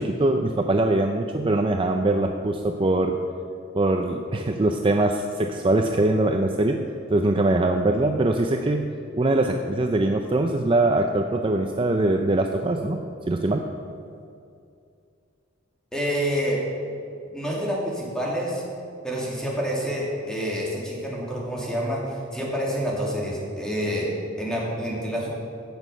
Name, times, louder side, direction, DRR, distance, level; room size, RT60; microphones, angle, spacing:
voice 1, 0.0-3.2 3.7-6.8 7.1-13.0 13.3-13.6, right 2 dB, 25° right, 4 dB, 0.5 m, -22 dB
voice 2, 15.9-16.6 17.3-18.6 19.0-24.1 24.4-25.3, equal, 5° left, -5 dB, 2.5 m, -28 dB
16.5 x 6.4 x 5.3 m, 2.5 s
head